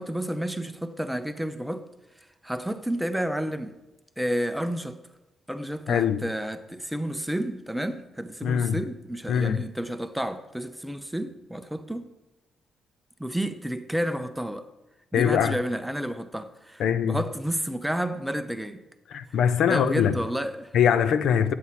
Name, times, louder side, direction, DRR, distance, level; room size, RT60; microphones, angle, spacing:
voice 1, 0.0-1.9 2.4-3.7 4.2-5.0 5.5-12.1 13.2-14.7 15.1-18.8 19.7-20.7, equal, 5° right, 0.5 m, -30 dB
voice 2, 5.9-6.3 8.4-8.8 9.3-9.7 15.1-15.6 16.8-17.2 19.1-20.2 20.7-21.5, left 8 dB, 70° left, 0.5 m, -23 dB
9.3 x 8.5 x 5.7 m
cardioid pair, 135°, 0 cm